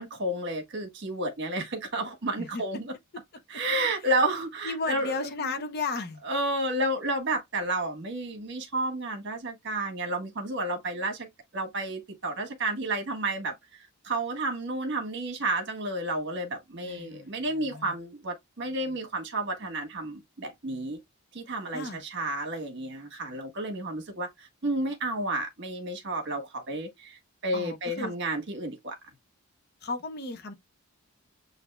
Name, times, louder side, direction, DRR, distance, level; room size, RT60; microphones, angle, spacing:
voice 1, 0.0-2.9 3.5-5.3 6.2-11.3 11.5-21.0 21.3-29.0, right 2 dB, 55° right, 1.4 m, -31 dB
voice 2, 4.6-6.2 16.8-17.9 21.7-22.0 27.5-28.1 29.8-30.5, left 3 dB, 45° left, 0.7 m, -34 dB
7.9 x 2.7 x 2.2 m
head